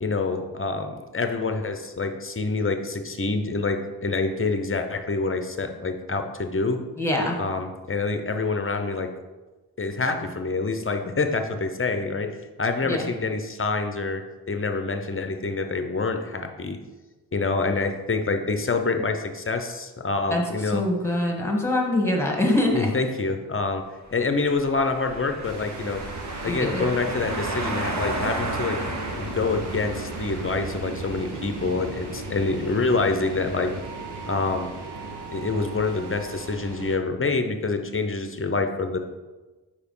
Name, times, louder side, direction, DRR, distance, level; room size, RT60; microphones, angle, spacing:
voice 1, 0.0-6.8 7.4-9.1 9.8-16.8 17.3-20.8 22.7-23.8 24.1-26.0 26.4-28.8 29.1-33.7 34.2-34.7 35.3-39.0, left 3 dB, 30° left, 6 dB, 0.8 m, -26 dB
voice 2, 7.0-7.4 12.9-13.1 20.3-22.9 26.4-26.9, left 1 dB, 5° left, -1 dB, 1.6 m, -24 dB
sound 1, 24.4-31.1, right 2 dB, 40° right, 1.0 m, -33 dB
sound 2, 25.4-37.0, right 2 dB, 65° right, 1.1 m, -36 dB
4.8 x 4.5 x 5.5 m, 1.2 s
cardioid pair, 45°, 43 cm